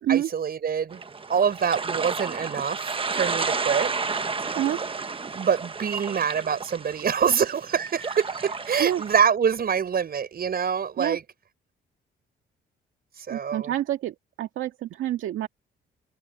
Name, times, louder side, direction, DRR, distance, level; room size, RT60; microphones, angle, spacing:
voice 1, 0.1-1.0 1.3-3.9 5.3-11.2 13.2-13.7, right 7 dB, 50° right, 6.2 m, -25 dB
sound 1, 0.9-9.3, right 4 dB, 25° right, 1.3 m, -31 dB
voice 2, 13.3-15.5, right 12 dB, 80° right, 2.2 m, -27 dB
open air
cardioid pair, 90°, 20 cm